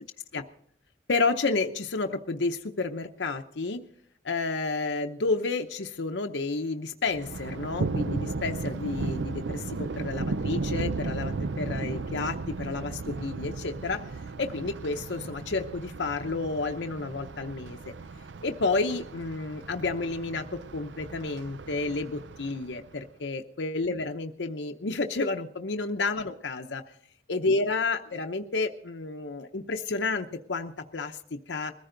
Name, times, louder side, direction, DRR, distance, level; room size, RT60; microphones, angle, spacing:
voice 1, 1.1-3.8 4.2-14.1 14.4-17.8 18.4-26.8 27.3-31.7, left 3 dB, 80° left, 5 dB, 0.8 m, -30 dB
Thunder, 7.1-23.0, right 3 dB, 85° right, 0.6 m, -35 dB
21.5 x 14.5 x 3.9 m, 0.64 s
head